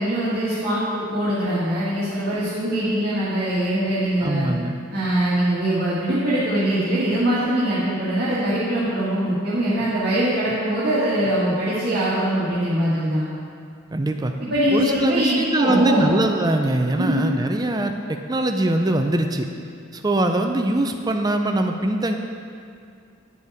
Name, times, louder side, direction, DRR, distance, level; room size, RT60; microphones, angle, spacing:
voice 1, 0.0-4.5 4.9-13.2 14.5-16.0 17.0-17.3, right 1 dB, 50° right, -11 dB, 1.9 m, -22 dB
voice 2, 4.2-4.8 13.9-14.3 14.7-19.5 19.9-22.1, right 1 dB, 20° right, 5 dB, 0.4 m, -22 dB
10.0 x 6.9 x 4.9 m, 2.3 s
head